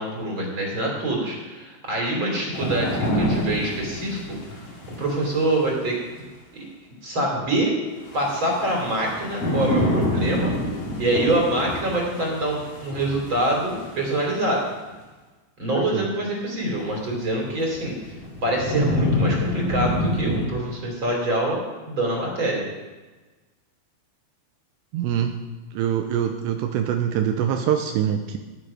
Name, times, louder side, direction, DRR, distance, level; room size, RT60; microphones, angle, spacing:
voice 1, 0.0-4.2 4.5-4.6 4.9-6.0 6.5-6.6 7.0-7.8 8.1-10.5 11.0-14.7 15.6-18.1 18.4-22.6, right 1 dB, 30° right, -1 dB, 2.8 m, -25 dB
sound 1, 2.5-5.6 8.0-14.3 16.9-17.0 17.6-20.5, left 1 dB, 40° left, 2.6 m, -27 dB
voice 2, 15.7-16.1 24.9-25.4 25.7-28.4, right 9 dB, 80° right, 5 dB, 2.7 m, -24 dB
19.5 x 7.1 x 5.0 m, 1.2 s
omnidirectional pair, 5.5 m